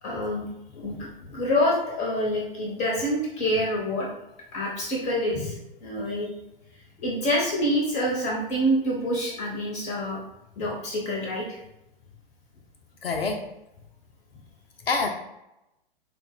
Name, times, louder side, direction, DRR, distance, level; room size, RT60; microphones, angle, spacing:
voice 1, 0.0-0.4 0.8-1.0 1.3-4.1 4.5-5.6 5.8-6.3 7.0-10.2 10.6-11.6, equal, 25° left, -2 dB, 0.7 m, -26 dB
voice 2, 0.8-1.4 5.3-5.5 13.0-13.5 14.9-15.1, left 4 dB, 85° left, 2 dB, 0.5 m, -29 dB
4.1 x 2.1 x 3.4 m, 0.90 s
figure-of-eight pair, 105°, 29 cm